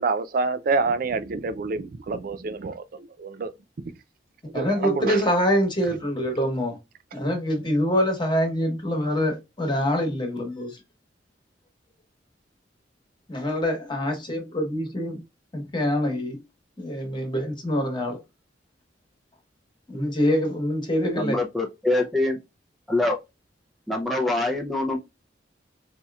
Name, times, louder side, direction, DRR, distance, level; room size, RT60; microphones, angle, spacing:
voice 1, 0.0-3.5 4.5-5.2, right 4 dB, 55° right, 0.4 m, -27 dB
voice 2, 4.5-6.8 7.1-10.8 13.3-15.2 15.7-16.4 16.8-18.2 19.9-21.4, equal, 25° left, 1.2 m, -25 dB
voice 3, 21.2-22.4 22.9-23.2 23.9-25.0, left 2 dB, ahead, 0.5 m, -24 dB
4.4 x 2.8 x 2.3 m
head